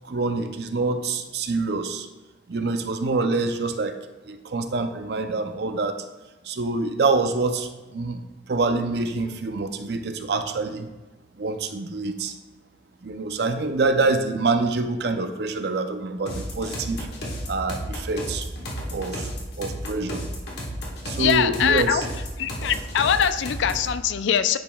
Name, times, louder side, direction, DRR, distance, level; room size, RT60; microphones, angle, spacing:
voice 1, 0.0-2.1 2.5-4.0 4.2-6.0 6.4-8.2 8.5-10.9 11.4-12.3 13.0-17.1 17.5-18.5 18.9-19.3 19.6-20.3 21.0-22.1, right 3 dB, 60° right, 8 dB, 0.5 m, -26 dB
sound 1, 16.3-23.9, equal, 65° left, 1.4 m, -33 dB
sound 2, 17.3-20.4, right 1 dB, 15° right, 0.3 m, -43 dB
voice 2, 21.2-22.0 22.4-24.6, left 8 dB, 80° left, 12 dB, 0.4 m, -22 dB
10.0 x 5.0 x 2.3 m, 1.1 s
head